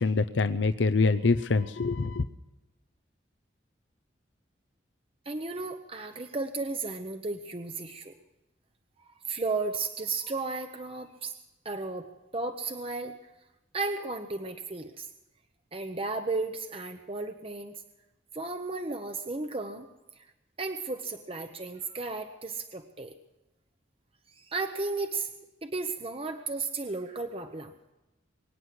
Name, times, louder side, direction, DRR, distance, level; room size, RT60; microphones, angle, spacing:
voice 1, 0.0-2.2, left 4 dB, 80° left, 10 dB, 0.7 m, -25 dB
voice 2, 5.3-8.1 9.3-11.3 11.6-12.1 12.3-13.2 13.7-15.1 15.7-17.8 18.3-19.9 20.6-23.1 24.4-25.3 25.6-27.7, right 3 dB, 30° right, 7 dB, 0.9 m, -34 dB
23.5 x 9.8 x 6.1 m, 1.0 s
head